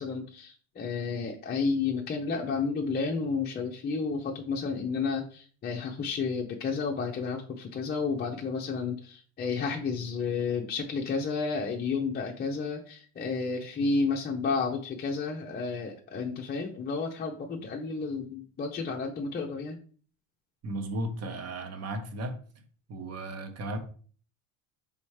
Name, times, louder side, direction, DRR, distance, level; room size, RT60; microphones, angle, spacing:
voice 1, 0.0-19.8, left 4 dB, 25° left, 0.6 m, -31 dB
voice 2, 20.6-22.4 22.9-23.8, right 1 dB, 35° right, 0.9 m, -35 dB
4.2 x 3.5 x 3.1 m
supercardioid pair, 95°, 42 cm